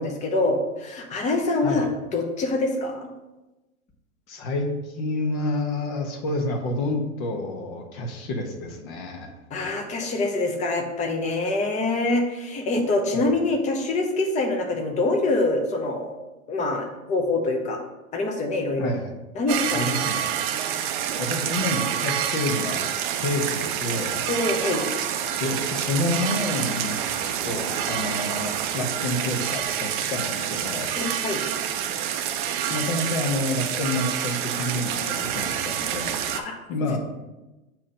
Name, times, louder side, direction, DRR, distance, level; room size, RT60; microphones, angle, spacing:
voice 1, 0.0-1.9 2.1-3.1 9.5-16.1 16.5-17.8 18.1-18.9 19.3-20.0 24.3-24.8 31.0-31.4 36.3-36.6, left 2 dB, 15° left, 3 dB, 0.8 m, -25 dB
voice 2, 4.3-9.3 13.1-13.2 18.8-19.1 19.7-20.3 21.2-22.9 23.2-24.2 25.4-27.0 27.4-30.9 32.7-36.2 36.7-37.0, left 2 dB, 45° left, 3 dB, 1.2 m, -29 dB
sound 1, 19.5-36.4, right 9 dB, 35° right, 0.5 m, -27 dB
7.2 x 3.0 x 5.1 m, 1.1 s
hypercardioid pair, 120°, 42 cm